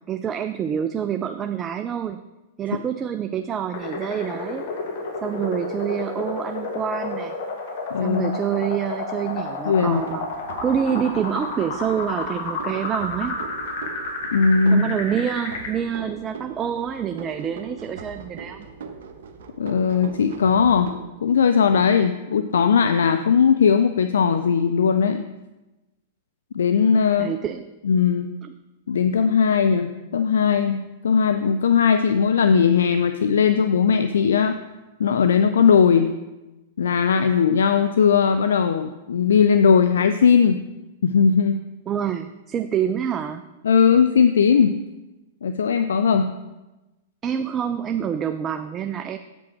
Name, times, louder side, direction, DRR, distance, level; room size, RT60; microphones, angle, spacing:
voice 1, 0.1-2.2 2.6-4.6 5.2-7.4 8.0-10.3 10.6-13.4 14.7-18.7 27.2-27.6 28.4-28.5 41.9-43.4 47.2-49.2, right 8 dB, 25° right, 8 dB, 0.3 m, -27 dB
sound 1, 3.7-15.7, left 3 dB, 60° left, 1.4 m, -31 dB
voice 2, 7.9-8.4 9.7-10.0 14.3-14.9 19.6-20.9 21.2-25.2 26.5-27.3 27.8-28.3 28.9-34.6 35.0-36.1 36.8-40.6 41.0-41.6 43.6-44.8 45.4-46.3, left 6 dB, 75° left, 9 dB, 0.3 m, -18 dB
sound 2, 9.7-21.0, right 5 dB, 65° right, 0.8 m, -40 dB
8.4 x 5.3 x 4.4 m, 1.1 s
hypercardioid pair, 105°, 0 cm